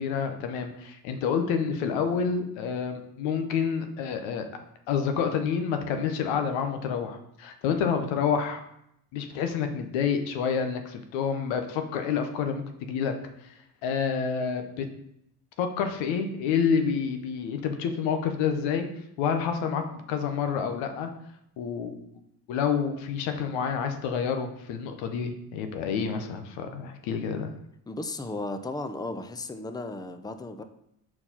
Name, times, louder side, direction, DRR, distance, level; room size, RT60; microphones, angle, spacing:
voice 1, 0.0-4.5 4.9-8.6 9.1-13.1 13.4-13.5 13.8-14.9 15.6-18.9 19.2-21.1 21.6-22.0 22.5-27.5, left 6 dB, 90° left, 6 dB, 0.8 m, -28 dB
voice 2, 27.9-30.6, left 2 dB, 10° left, 8 dB, 0.6 m, -35 dB
4.5 x 4.3 x 5.7 m, 0.76 s
supercardioid pair, 60°, 45 cm